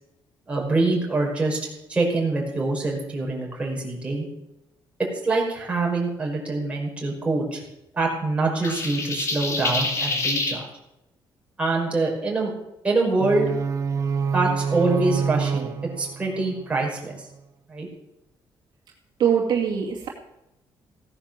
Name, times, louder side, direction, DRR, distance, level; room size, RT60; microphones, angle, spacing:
voice 1, 0.5-1.6 1.9-4.3 5.2-7.6 7.9-10.7 11.6-12.5 12.8-13.5 14.3-17.3 17.7-17.9, right 3 dB, 15° right, -2 dB, 5.2 m, -25 dB
sound 1, 8.6-10.6, left 2 dB, 35° left, 2.8 m, -26 dB
sound 2, 13.2-17.2, right 6 dB, 40° right, 0.9 m, -27 dB
voice 2, 19.2-20.1, right 8 dB, 60° right, -1 dB, 2.4 m, -22 dB
16.5 x 9.8 x 7.5 m, 0.86 s
cardioid pair, 150°, 8 cm